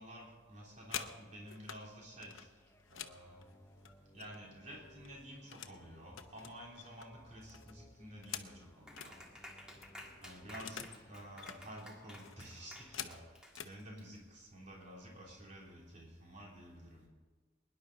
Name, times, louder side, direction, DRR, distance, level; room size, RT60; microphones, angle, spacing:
voice 1, 0.0-2.5 2.9-3.4 4.1-9.1 10.2-13.2 13.6-17.1, equal, 35° right, -3 dB, 3.4 m, -51 dB
sound 1, 0.5-1.8 2.2-4.6 4.9-5.8 6.1-9.1 9.5-9.6 9.8-11.0 11.3-11.6 12.1-13.8 14.6-14.8 15.1-15.4 15.7-16.2, left 9 dB, 85° left, 0.8 m, -48 dB
sound 2, 2.4-13.4, left 1 dB, 15° left, 0.8 m, -63 dB
Clapping, 8.9-14.2, left 1 dB, 5° right, 1.7 m, -53 dB
22.5 x 10.5 x 4.1 m, 1.4 s
head